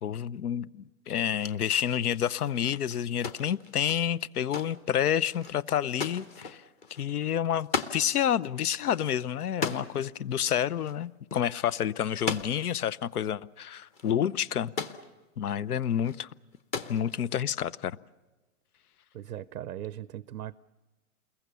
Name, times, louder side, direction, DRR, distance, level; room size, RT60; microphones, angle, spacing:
voice 1, 0.0-6.6 7.0-14.7 15.4-16.3 16.9-18.0, left 9 dB, 80° left, 0.9 m, -29 dB
sound 1, 1.2-8.0 8.3-8.4 8.7-10.1 10.8-11.1 11.3-11.5 12.1-12.8 13.6-13.7 13.9-15.1 15.8-16.2 16.5-17.4, left 4 dB, 15° left, 0.7 m, -37 dB
voice 2, 19.1-20.6, right 12 dB, 90° right, 0.7 m, -39 dB
28.5 x 22.0 x 6.9 m
hypercardioid pair, 150°, 45 cm